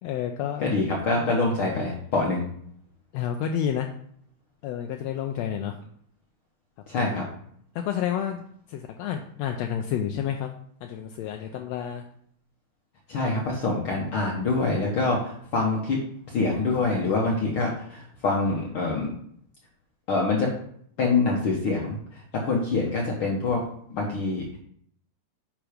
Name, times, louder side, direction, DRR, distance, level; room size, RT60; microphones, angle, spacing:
voice 1, 0.0-0.7 3.1-3.9 4.6-5.8 6.9-7.1 7.7-10.5 10.8-12.0, left 9 dB, 80° left, 4 dB, 1.6 m, -30 dB
voice 2, 0.6-2.5 6.9-7.2 13.1-16.0 16.3-19.1 20.1-20.5 21.0-23.6 23.9-24.6, left 3 dB, 60° left, -2 dB, 1.5 m, -25 dB
8.9 x 3.7 x 5.0 m, 0.65 s
omnidirectional pair, 3.3 m